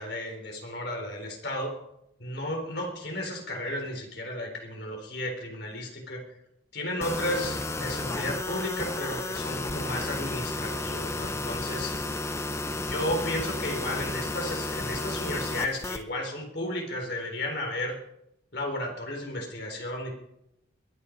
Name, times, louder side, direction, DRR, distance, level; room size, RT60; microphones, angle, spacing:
voice 1, 0.0-1.8 2.2-6.2 6.7-12.0 12.7-18.0 18.5-20.1, left 1 dB, 60° left, 2 dB, 4.0 m, -33 dB
sound 1, 7.0-16.0, left 2 dB, 15° left, 0.6 m, -32 dB
22.0 x 9.4 x 5.2 m, 0.81 s
head